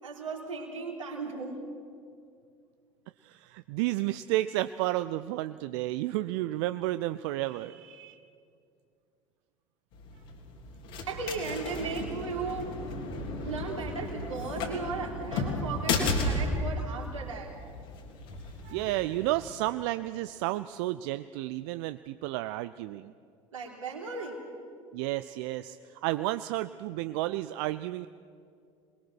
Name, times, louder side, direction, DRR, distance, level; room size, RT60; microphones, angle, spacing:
voice 1, 0.0-1.7 11.1-12.8 13.4-17.6 23.5-24.4, right 4 dB, 80° right, -1 dB, 3.6 m, -36 dB
voice 2, 3.2-8.2 18.6-23.1 24.9-28.1, right 16 dB, 55° right, 13 dB, 0.5 m, -32 dB
sound 1, 9.9-19.5, left 2 dB, 55° left, 3.3 m, -34 dB
26.5 x 21.0 x 6.2 m, 2.3 s
figure-of-eight pair, 65°, 17 cm